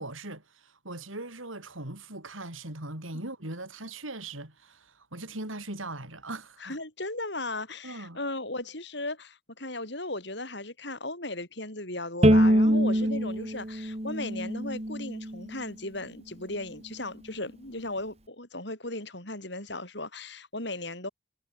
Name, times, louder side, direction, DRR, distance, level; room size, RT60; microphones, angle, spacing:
voice 1, 0.0-6.8 7.8-8.2 12.6-13.2, right 2 dB, 85° right, 7.5 m, -40 dB
voice 2, 6.6-21.1, left 2 dB, 60° left, 7.2 m, -36 dB
Bowed string instrument, 12.2-15.4, equal, 30° right, 3.4 m, -24 dB
head